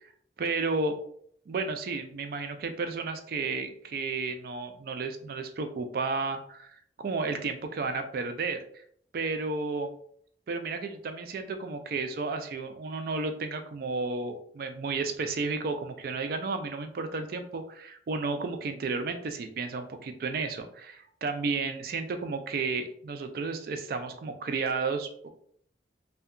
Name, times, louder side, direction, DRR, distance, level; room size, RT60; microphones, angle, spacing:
voice 1, 0.4-0.9 1.5-8.6 9.1-9.9 10.5-25.3, right 4 dB, 55° right, 7 dB, 0.3 m, -32 dB
2.7 x 2.2 x 2.4 m, 0.62 s
head